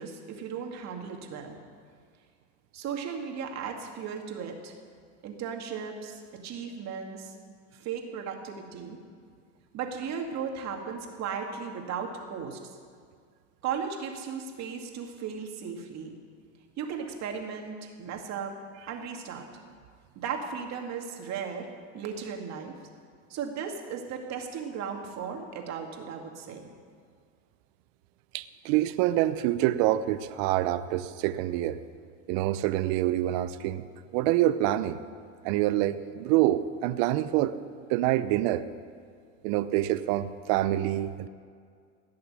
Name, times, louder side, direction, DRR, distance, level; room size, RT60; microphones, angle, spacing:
voice 1, 0.0-1.6 2.7-4.7 5.2-7.4 7.7-9.0 9.7-12.6 13.6-16.2 16.8-18.6 18.9-19.5 20.2-21.7 21.9-22.7 23.3-26.7, right 6 dB, 45° right, 3 dB, 2.3 m, -36 dB
voice 2, 28.3-31.8 32.3-33.8 34.1-35.0 35.4-37.6 37.9-38.6 39.4-41.3, right 14 dB, 60° right, 13 dB, 0.8 m, -26 dB
17.5 x 6.6 x 9.9 m, 2.1 s
supercardioid pair, 110°, 37 cm